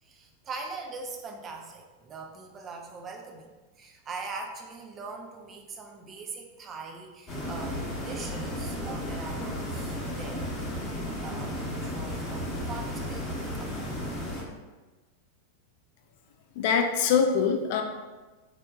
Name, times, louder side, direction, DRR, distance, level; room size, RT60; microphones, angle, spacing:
voice 1, 0.0-10.5 11.2-13.7, right 4 dB, 25° right, 2 dB, 0.4 m, -42 dB
sound 1, 7.3-14.4, equal, 25° left, 0.8 m, -34 dB
voice 2, 16.6-17.8, left 6 dB, 50° left, 4 dB, 0.3 m, -23 dB
3.4 x 2.2 x 2.2 m, 1.2 s
figure-of-eight pair, 90°, 0 cm